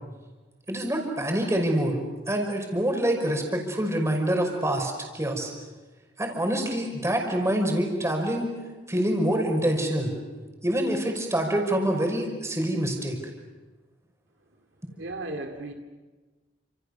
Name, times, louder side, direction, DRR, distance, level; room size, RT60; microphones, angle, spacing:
voice 1, 0.7-2.0 2.3-5.5 6.2-8.5 8.9-10.1 10.6-13.2, right 1 dB, 15° right, 2 dB, 5.7 m, -26 dB
voice 2, 15.0-15.7, right 2 dB, 70° right, 4 dB, 2.4 m, -35 dB
30.0 x 28.0 x 6.8 m, 1.3 s
head